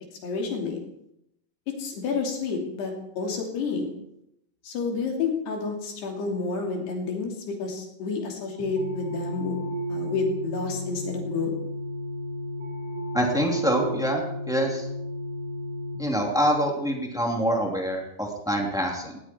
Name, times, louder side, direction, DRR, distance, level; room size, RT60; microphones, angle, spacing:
voice 1, 0.2-0.8 1.7-3.9 4.6-9.6 9.9-11.5, left 4 dB, 60° left, 1 dB, 4.6 m, -30 dB
sound 1, 8.6-16.0, equal, 65° right, 6.0 m, -33 dB
voice 2, 13.1-14.9 16.0-19.2, equal, ahead, 0 dB, 1.2 m, -25 dB
19.0 x 17.0 x 4.6 m, 0.81 s
omnidirectional pair, 5.8 m